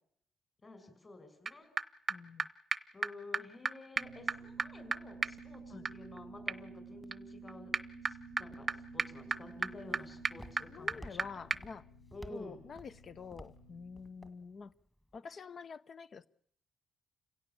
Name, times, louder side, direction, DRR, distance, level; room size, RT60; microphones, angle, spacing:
voice 1, 0.6-1.7 2.9-7.7 8.0-11.4 12.1-12.6, left 2 dB, 25° left, 5.7 m, -51 dB
sound 1, 1.5-1.6 1.8-1.9 2.1-2.2 2.4-2.5 2.7-2.8 3.0-3.1 3.3-3.4 3.6-3.7 4.0-11.2 11.5-11.6, right 4 dB, 30° right, 0.8 m, -37 dB
voice 2, 2.1-2.5 5.7-5.9 10.7-11.9 12.3-14.7 15.1-16.3, left 5 dB, 45° left, 0.8 m, -48 dB
sound 2, 4.0-14.0, left 3 dB, 80° left, 3.4 m, -59 dB
Walk footsteps, 9.3-15.2, equal, 5° left, 1.9 m, -55 dB
29.5 x 17.0 x 7.3 m
cardioid pair, 90°, 0 cm